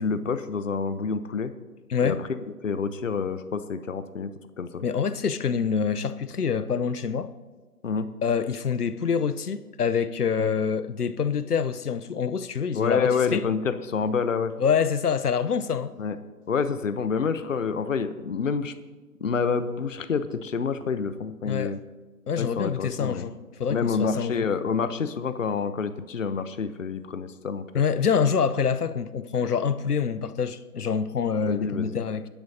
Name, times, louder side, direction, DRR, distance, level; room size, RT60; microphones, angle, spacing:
voice 1, 0.0-1.5 2.0-4.3 4.6-4.8 7.8-8.1 10.4-10.5 12.7-14.5 16.0-16.2 16.5-18.7 19.2-21.8 22.4-23.3 23.7-27.6 31.4-32.0, left 5 dB, 55° left, 0.9 m, -28 dB
voice 2, 4.8-7.3 8.2-13.4 14.6-15.9 21.5-21.8 22.3-24.5 27.7-32.3, left 6 dB, 75° left, 0.9 m, -26 dB
27.5 x 10.5 x 2.8 m
figure-of-eight pair, 155°, 47 cm